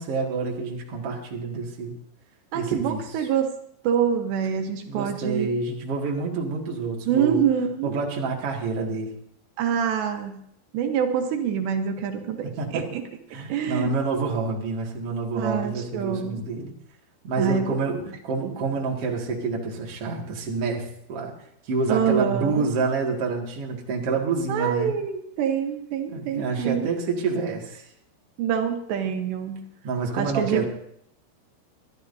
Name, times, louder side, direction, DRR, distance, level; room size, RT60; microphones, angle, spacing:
voice 1, 0.0-1.9 2.5-3.0 4.9-7.4 7.8-9.1 12.6-12.8 13.3-16.7 17.2-21.3 21.7-24.9 26.1-27.9 29.8-30.7, right 4 dB, 40° right, -1 dB, 2.5 m, -28 dB
voice 2, 2.5-3.5 3.9-5.5 7.1-7.9 9.6-10.4 10.7-13.1 13.5-13.9 15.4-16.5 17.4-17.8 18.5-18.6 21.9-22.7 24.5-26.9 28.4-29.7 30.2-30.7, right 8 dB, 80° right, 4 dB, 3.3 m, -26 dB
26.5 x 12.0 x 2.7 m, 0.71 s
omnidirectional pair, 5.0 m